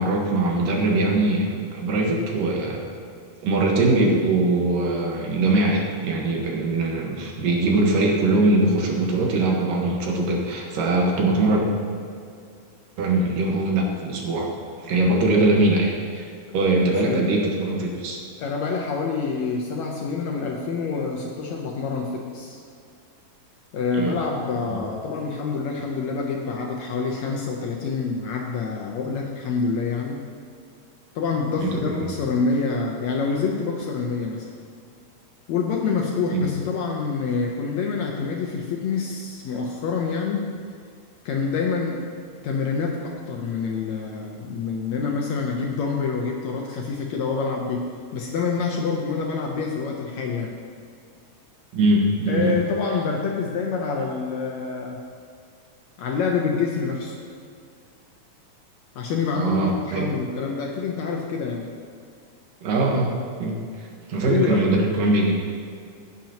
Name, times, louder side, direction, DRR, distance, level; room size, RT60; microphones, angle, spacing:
voice 1, 0.0-2.8 3.4-11.6 13.0-14.5 14.8-16.3 16.5-18.2 23.9-24.2 24.7-24.8 31.6-32.1 36.3-36.5 51.7-52.6 59.4-60.1 62.6-63.1 63.4-65.3, right 2 dB, 75° right, -1 dB, 3.0 m, -22 dB
voice 2, 18.4-22.6 23.7-30.3 31.2-34.5 35.5-40.6 41.3-42.0 42.4-50.6 52.3-55.0 56.0-57.2 59.0-61.7 64.2-64.7, left 5 dB, 70° left, 0 dB, 1.8 m, -27 dB
16.5 x 8.8 x 2.9 m, 2.3 s
omnidirectional pair, 3.9 m